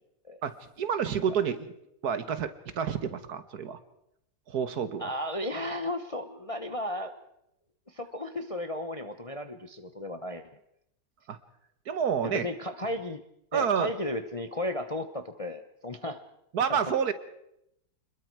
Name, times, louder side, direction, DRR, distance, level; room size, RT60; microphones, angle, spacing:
voice 1, 0.4-1.7 2.0-3.8 4.5-5.1 11.3-11.4 11.9-12.5 13.5-13.9 16.5-17.1, right 7 dB, 60° right, 12 dB, 1.6 m, -29 dB
voice 2, 5.0-7.1 7.9-10.5 12.2-13.2 13.5-16.2, left 1 dB, 25° left, 8 dB, 0.7 m, -34 dB
26.5 x 21.0 x 4.7 m, 0.81 s
omnidirectional pair, 1.9 m